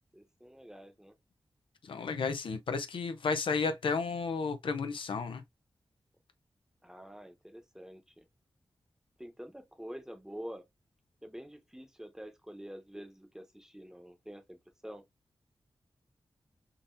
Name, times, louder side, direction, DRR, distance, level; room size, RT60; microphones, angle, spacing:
voice 1, 0.1-1.1 6.8-8.2 9.2-10.6 11.2-15.0, equal, 5° right, 0.9 m, -47 dB
voice 2, 1.8-5.4, left 4 dB, 80° left, 0.5 m, -32 dB
3.8 x 2.6 x 2.5 m
cardioid pair, 55°, 9 cm